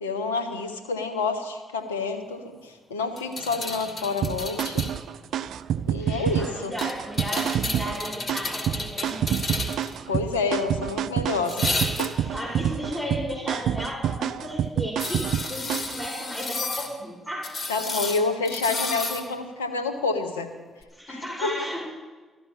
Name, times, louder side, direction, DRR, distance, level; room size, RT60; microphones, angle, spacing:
voice 1, 0.0-4.8 5.9-6.7 10.1-12.1 17.7-20.5 21.1-21.6, left 4 dB, 90° left, 7 dB, 1.1 m, -28 dB
sound 1, 3.2-5.0 6.8-10.0 11.5-12.3 15.0-16.9 17.4-19.2 20.8-20.9, left 2 dB, 45° left, 2.3 m, -32 dB
sound 2, 4.2-16.0, right 9 dB, 65° right, 0.4 m, -28 dB
voice 2, 6.0-9.2 12.1-17.5 20.9-21.8, equal, 15° left, -2 dB, 5.5 m, -34 dB
14.0 x 13.0 x 5.8 m, 1.3 s
hypercardioid pair, 45°, 0 cm